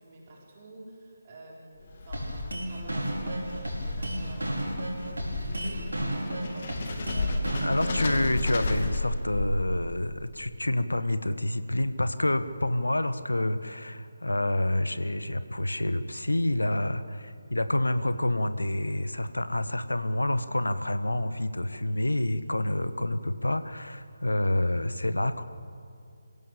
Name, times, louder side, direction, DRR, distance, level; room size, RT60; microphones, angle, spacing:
voice 1, 0.0-4.7 5.2-8.2, right 1 dB, 30° right, -3 dB, 4.2 m, -46 dB
sound 1, 1.8-10.1, left 2 dB, 40° left, 2.6 m, -33 dB
sound 2, 2.1-8.1, right 1 dB, 70° right, 5.1 m, -33 dB
voice 2, 7.6-25.4, left 1 dB, 75° left, 11 dB, 1.4 m, -28 dB
27.5 x 16.5 x 8.8 m, 2.6 s
figure-of-eight pair, 150°, 0 cm